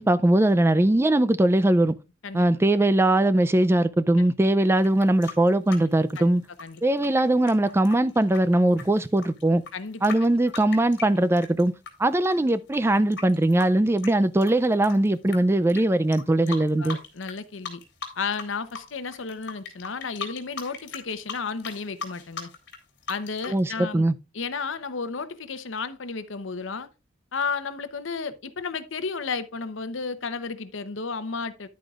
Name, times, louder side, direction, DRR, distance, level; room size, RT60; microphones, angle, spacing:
voice 1, 0.0-1.9 2.3-6.4 6.8-9.6 10.0-11.7 12.0-17.0 23.5-24.1, right 1 dB, 15° right, 0.3 m, -21 dB
sound 1, 4.8-11.9 12.2-15.4 15.7-15.8 16.1-17.4 17.6-18.5 18.7-23.6, left 5 dB, 60° left, 2.7 m, -38 dB
voice 2, 9.7-10.0 16.8-17.8 18.2-22.5 23.1-24.1 24.3-26.9 27.3-31.7, left 4 dB, 80° left, 0.8 m, -33 dB
10.5 x 9.0 x 2.4 m
head